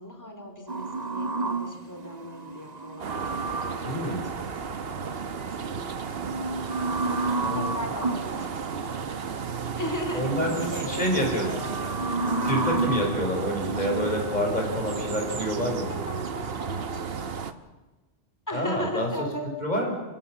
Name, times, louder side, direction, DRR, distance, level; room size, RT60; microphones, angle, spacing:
voice 1, 0.0-6.4 7.5-9.4 9.8-12.2 12.5-12.7 15.8-17.6 18.5-19.5, equal, 15° left, 5 dB, 3.4 m, -38 dB
sound 1, 0.7-3.9 6.1-8.3 9.7-10.3 10.7-14.1, right 2 dB, 40° right, 1.5 m, -31 dB
sound 2, 3.0-17.5, right 6 dB, 65° right, 1.3 m, -33 dB
voice 2, 3.8-4.3 7.4-7.7 10.1-11.4 12.4-16.1 18.5-19.1 19.6-19.9, equal, 40° left, 1 dB, 5.7 m, -28 dB
28.5 x 16.5 x 7.4 m, 1.2 s
omnidirectional pair, 1.1 m